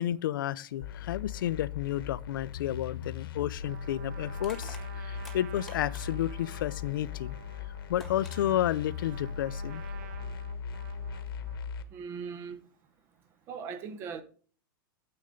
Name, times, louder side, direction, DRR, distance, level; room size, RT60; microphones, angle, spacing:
voice 1, 0.0-7.4 7.9-9.8, left 12 dB, 65° left, 0.6 m, -31 dB
sound 1, 0.8-11.8, left 7 dB, 80° left, 1.4 m, -39 dB
Trumpet, 3.6-11.7, right 8 dB, 45° right, 1.2 m, -51 dB
Crushing, 4.4-6.3 7.5-7.6 8.0-8.4, left 2 dB, ahead, 1.6 m, -50 dB
voice 2, 11.9-12.6 13.5-14.2, right 6 dB, 20° right, 0.8 m, -39 dB
9.7 x 8.1 x 3.8 m
supercardioid pair, 175°, 12 cm